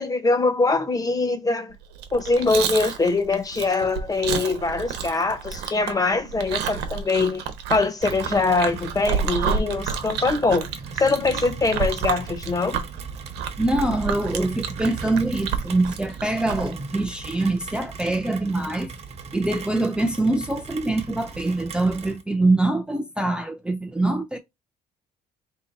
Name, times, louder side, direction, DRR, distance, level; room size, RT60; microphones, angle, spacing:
voice 1, 0.0-1.7 2.1-12.8, left 3 dB, 20° left, 0.9 m, -23 dB
Chewing mastication, 1.9-16.7, right 7 dB, 90° right, 1.0 m, -30 dB
Rain, 8.0-22.2, right 5 dB, 40° right, 0.9 m, -37 dB
voice 2, 13.6-18.9 19.3-24.4, right 2 dB, 5° right, 0.6 m, -24 dB
3.4 x 2.9 x 4.0 m
cardioid pair, 110°, 17 cm